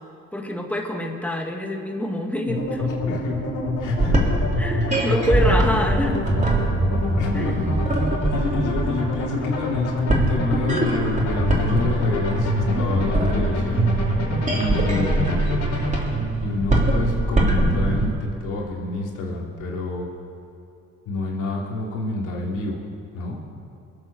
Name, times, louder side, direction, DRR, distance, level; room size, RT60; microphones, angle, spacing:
voice 1, 0.3-2.9 4.6-6.3 7.3-7.5 14.7-15.3, equal, 5° left, 2 dB, 1.9 m, -26 dB
sound 1, 2.5-16.0, left 2 dB, 65° left, 5.2 m, -26 dB
voice 2, 3.1-3.4 3.8-4.3 4.8-4.9 7.2-8.0 8.3-13.8 14.5-15.4 16.4-20.1 21.1-22.8 23.1-23.5, left 2 dB, 85° left, -1 dB, 2.7 m, -28 dB
sound 2, 3.8-18.1, right 2 dB, 25° right, 3.5 m, -23 dB
23.0 x 8.1 x 7.3 m, 2.4 s
cardioid pair, 90°, 30 cm